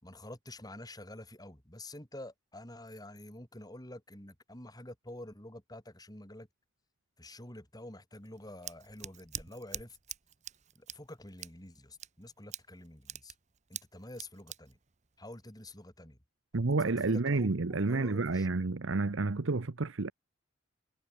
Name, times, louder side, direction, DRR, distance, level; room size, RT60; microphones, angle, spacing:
voice 1, 0.0-6.5 7.2-10.0 10.7-13.3 13.7-14.8 15.2-16.2 16.5-18.6, left 1 dB, 20° left, 5.0 m, -48 dB
Scissors, 8.1-15.9, right 10 dB, 35° right, 1.0 m, -46 dB
voice 2, 16.5-20.1, right 3 dB, 70° right, 0.9 m, -30 dB
head